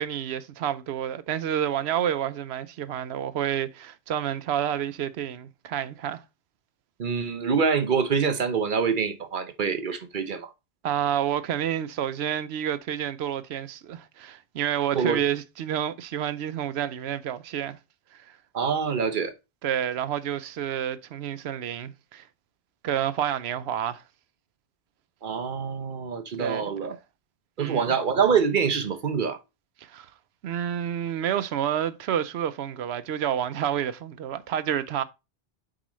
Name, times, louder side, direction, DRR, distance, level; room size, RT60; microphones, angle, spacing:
voice 1, 0.0-6.2 10.8-17.8 18.1-18.4 19.6-22.3 22.8-24.0 26.4-27.0 27.6-27.9 29.8-30.1 30.4-35.0, right 10 dB, 85° right, 0.9 m, -29 dB
voice 2, 7.0-10.5 14.9-15.2 18.5-19.3 25.2-27.0 27.6-29.4, right 6 dB, 55° right, 0.9 m, -25 dB
7.6 x 4.8 x 3.1 m
omnidirectional pair, 1.1 m